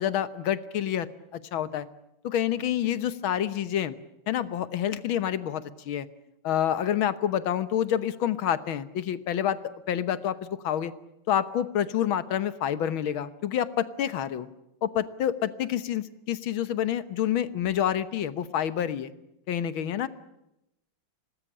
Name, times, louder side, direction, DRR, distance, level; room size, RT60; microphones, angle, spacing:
voice 1, 0.0-1.9 2.2-4.0 4.3-6.1 6.4-9.6 9.9-10.9 11.3-14.5 14.8-19.1 19.5-20.1, left 10 dB, 90° left, 14 dB, 2.0 m, -28 dB
26.0 x 19.0 x 10.0 m, 0.87 s
omnidirectional pair, 2.2 m